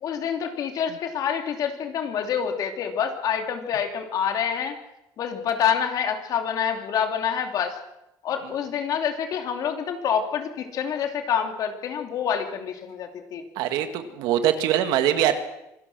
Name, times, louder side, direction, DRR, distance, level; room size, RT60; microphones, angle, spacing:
voice 1, 0.0-4.8 5.2-7.8 8.2-13.4, left 8 dB, 60° left, 5 dB, 3.0 m, -27 dB
voice 2, 13.6-15.4, right 10 dB, 90° right, 8 dB, 2.0 m, -22 dB
26.0 x 17.5 x 6.3 m, 0.88 s
cardioid pair, 120°, 7 cm